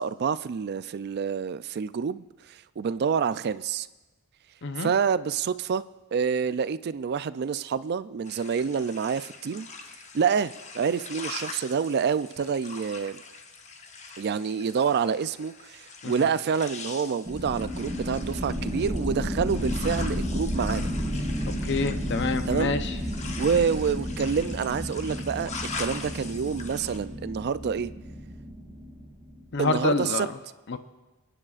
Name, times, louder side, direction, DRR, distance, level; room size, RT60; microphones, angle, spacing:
voice 1, 0.0-3.9 4.8-5.8 6.1-9.7 10.1-13.2 14.2-20.9 22.5-22.7 23.4-25.5 25.8-27.9 29.6-30.3, right 6 dB, 50° right, 15 dB, 0.3 m, -27 dB
sound 1, 8.2-27.0, left 4 dB, 35° left, 0.9 m, -42 dB
sound 2, 17.2-29.5, equal, 10° right, 3.6 m, -32 dB
voice 2, 21.6-23.0 29.5-30.3 30.7-30.8, left 3 dB, 55° left, 9 dB, 0.7 m, -27 dB
28.0 x 10.0 x 2.4 m, 1.1 s
head